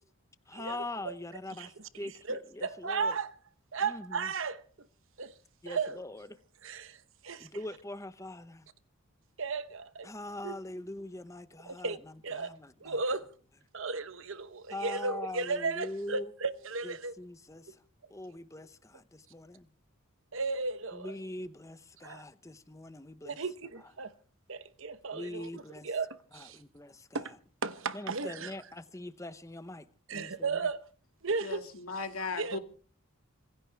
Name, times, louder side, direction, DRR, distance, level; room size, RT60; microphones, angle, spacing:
voice 1, 0.5-3.2 3.8-4.3 5.6-6.3 6.7-6.8 7.4-8.7 10.0-13.0 14.7-16.3 16.8-17.8 18.1-19.7 20.9-23.4 25.1-25.9 26.3-27.4 27.9-30.7, left 1 dB, 15° left, 0.8 m, -43 dB
voice 2, 2.3-3.4 3.7-4.6 5.2-5.3 5.7-6.0 6.6-7.5 9.4-10.1 10.4-10.5 11.7-12.0 12.2-13.3 13.7-17.1 20.3-21.1 22.0-22.2 23.2-24.1 24.5-26.6 27.1-27.3 27.6-28.5 30.1-30.8 31.2-31.6 32.4-32.6, right 4 dB, 60° right, 1.0 m, -35 dB
voice 3, 31.4-32.6, left 4 dB, 85° left, 2.2 m, -37 dB
25.5 x 16.0 x 3.4 m
head